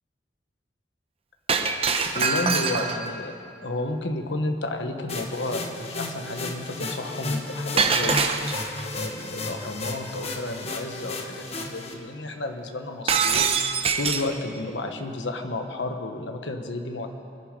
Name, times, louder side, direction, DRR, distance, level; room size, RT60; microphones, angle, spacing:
Shatter, 1.5-3.1 7.8-8.8 13.1-14.3, right 5 dB, 30° right, 0.8 m, -24 dB
voice 1, 2.1-8.4 8.9-13.6 13.9-17.1, left 2 dB, 75° left, 5 dB, 1.2 m, -32 dB
sound 1, 5.1-11.9, left 2 dB, 35° left, 1.3 m, -33 dB
24.0 x 10.5 x 5.3 m, 2.5 s
head